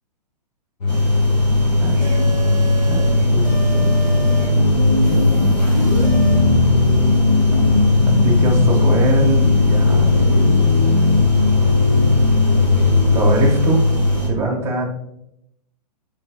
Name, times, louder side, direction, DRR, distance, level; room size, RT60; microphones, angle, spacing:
sound 1, 0.8-14.2, left 3 dB, 65° left, 0.8 m, -17 dB
sound 2, 0.9-14.3, left 2 dB, 90° left, 1.2 m, -21 dB
voice 1, 1.8-2.2 2.9-4.5 8.1-10.7 13.1-13.8 14.3-14.9, right 2 dB, 10° right, -1 dB, 0.6 m, -23 dB
sound 3, 2.0-3.1 3.4-4.5 5.0-6.4, right 2 dB, 5° left, 1.2 m, -31 dB
4.0 x 3.3 x 2.3 m, 0.79 s
figure-of-eight pair, 120°, 21 cm